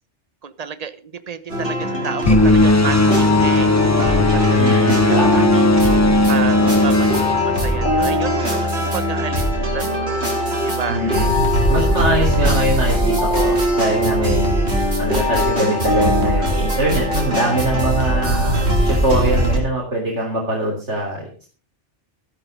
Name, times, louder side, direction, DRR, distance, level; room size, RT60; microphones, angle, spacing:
voice 1, 0.4-4.7 5.0-10.3 10.6-11.0 11.8-11.9, right 7 dB, 35° right, 13 dB, 1.1 m, -31 dB
sound 1, 1.5-19.6, right 1 dB, 65° right, 4.6 m, -22 dB
sound 2, 2.3-8.3, left 2 dB, 20° left, 0.5 m, -16 dB
sound 3, 3.1-19.1, left 2 dB, 45° left, 3.2 m, -25 dB
voice 2, 4.5-5.4 6.4-6.8 10.9-11.3 11.7-14.6 15.0-21.5, right 1 dB, 80° right, -2 dB, 3.9 m, -22 dB
14.0 x 12.0 x 5.3 m, 0.38 s
omnidirectional pair, 1.2 m